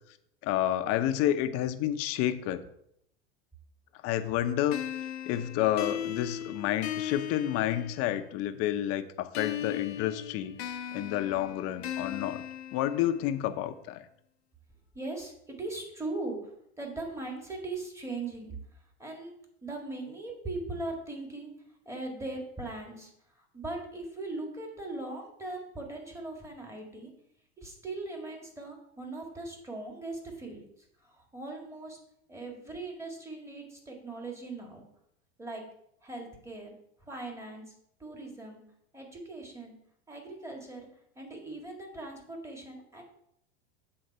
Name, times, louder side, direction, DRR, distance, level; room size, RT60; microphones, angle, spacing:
voice 1, 0.4-2.6 4.0-4.8 5.3-10.6 10.9-12.4 12.7-14.0, left 12 dB, 50° left, 10 dB, 0.7 m, -29 dB
sound 1, 4.7-8.3 9.3-13.4, left 10 dB, 90° left, 0.8 m, -38 dB
voice 2, 14.9-16.5 16.8-18.5 19.0-19.4 19.6-21.5 21.9-23.1 23.4-27.1 27.6-30.6 31.0-32.0 32.3-34.8 35.4-35.6 36.0-36.8 37.0-37.7 38.0-38.6 38.9-39.8 40.1-40.9 41.2-43.0, right 2 dB, 10° right, 1 dB, 1.9 m, -39 dB
7.9 x 3.9 x 5.4 m, 0.75 s
hypercardioid pair, 105°, 31 cm